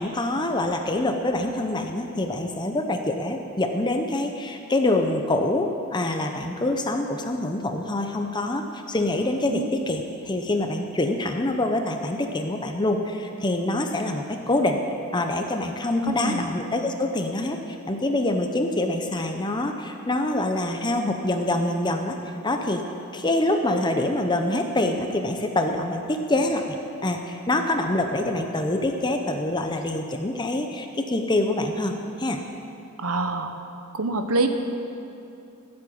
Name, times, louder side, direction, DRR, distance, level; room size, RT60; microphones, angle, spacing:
voice 1, 0.0-14.8 15.1-22.2 22.4-22.8 23.1-26.8 27.0-32.4, left 1 dB, 20° left, 4 dB, 0.7 m, -25 dB
voice 2, 16.0-16.4 33.0-33.5 33.9-34.5, right 2 dB, 75° right, 6 dB, 1.2 m, -25 dB
15.5 x 7.8 x 8.7 m, 2.7 s
head